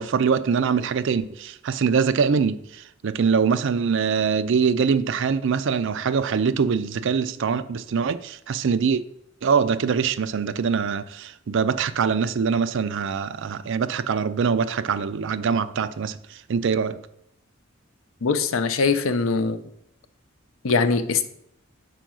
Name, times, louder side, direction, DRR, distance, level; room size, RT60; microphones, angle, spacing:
voice 1, 0.0-9.0 9.4-17.0, right 6 dB, 65° right, 0.4 m, -23 dB
voice 2, 18.2-19.6 20.6-21.3, left 4 dB, 90° left, 0.6 m, -22 dB
5.1 x 4.5 x 6.1 m
head